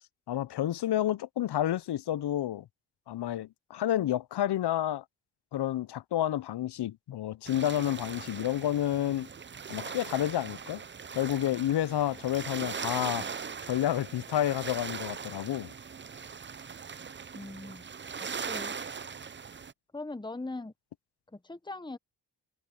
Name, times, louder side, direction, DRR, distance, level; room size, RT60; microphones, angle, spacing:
voice 1, 0.3-2.7 3.1-5.0 5.5-9.3 9.7-10.8 11.1-13.3 13.7-15.7, left 12 dB, 60° left, 0.7 m, -30 dB
sound 1, 7.5-19.7, right 6 dB, 25° right, 0.6 m, -40 dB
voice 2, 17.3-17.9 18.2-18.8 19.9-20.7 21.3-22.0, left 2 dB, 10° left, 1.2 m, -40 dB
supercardioid pair, 50°, 45 cm